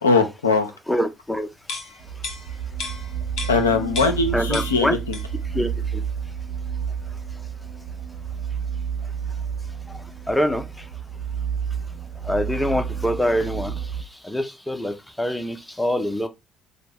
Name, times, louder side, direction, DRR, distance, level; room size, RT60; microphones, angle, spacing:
voice 1, 0.0-0.7 3.5-5.2, left 4 dB, 80° left, 0.4 m, -20 dB
voice 2, 0.9-1.5 4.3-5.0 5.5-5.7 10.3-10.6 12.2-13.7 14.2-16.3, equal, 5° left, 0.6 m, -24 dB
sound 1, 1.6-4.3 4.5-5.5 5.8-6.0, left 4 dB, 55° left, 0.8 m, -34 dB
sound 2, 2.0-14.0, right 7 dB, 55° right, 0.5 m, -30 dB
4.1 x 2.0 x 3.3 m
figure-of-eight pair, 45°, 0 cm